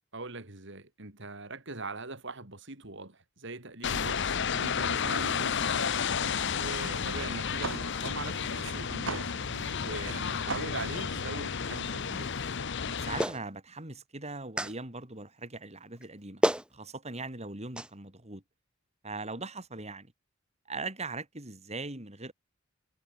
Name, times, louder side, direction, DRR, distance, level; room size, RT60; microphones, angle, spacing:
voice 1, 0.1-6.0 6.5-9.3 9.8-12.4, right 3 dB, 60° right, 4.0 m, -41 dB
sound 1, 3.8-13.2, left 6 dB, 60° left, 0.8 m, -32 dB
sound 2, 6.8-12.2, right 4 dB, 75° right, 1.6 m, -43 dB
voice 2, 9.5-9.8 13.0-16.4 16.7-18.4 19.0-20.1 20.7-22.3, right 3 dB, 35° right, 4.3 m, -40 dB
Clapping, 13.2-13.4 14.6-14.7 16.0-16.1 16.4-16.7 17.8-17.9, right 1 dB, 5° right, 1.1 m, -28 dB
head